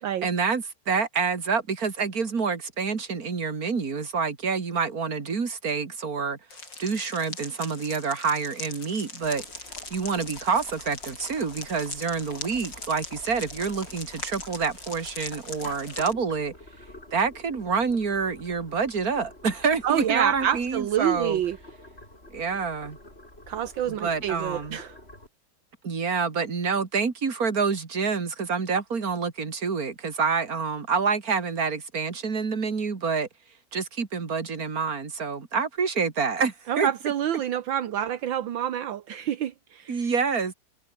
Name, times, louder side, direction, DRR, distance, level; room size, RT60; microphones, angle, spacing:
voice 1, 0.2-6.4 6.8-9.4 9.9-16.5 17.1-21.4 22.3-23.0 23.9-24.8 25.8-33.3 33.7-36.9 39.9-40.5, right 5 dB, 45° right, 2.9 m, -27 dB
sound 1, 6.5-16.1, left 3 dB, 60° left, 6.8 m, -41 dB
Boiling, 9.2-25.3, left 1 dB, 30° left, 7.1 m, -47 dB
voice 2, 19.8-21.6 23.5-25.0 36.7-40.1, right 10 dB, 75° right, 1.8 m, -27 dB
omnidirectional pair, 2.2 m